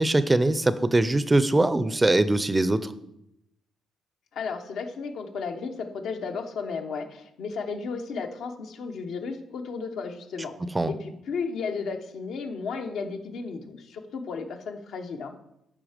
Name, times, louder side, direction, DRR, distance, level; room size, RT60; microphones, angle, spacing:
voice 1, 0.0-2.9 10.7-10.9, right 2 dB, 15° right, 13 dB, 0.5 m, -22 dB
voice 2, 4.3-10.5 10.9-15.3, left 5 dB, 75° left, 5 dB, 1.0 m, -34 dB
8.9 x 5.7 x 5.0 m, 0.82 s
cardioid pair, 90°, 0 cm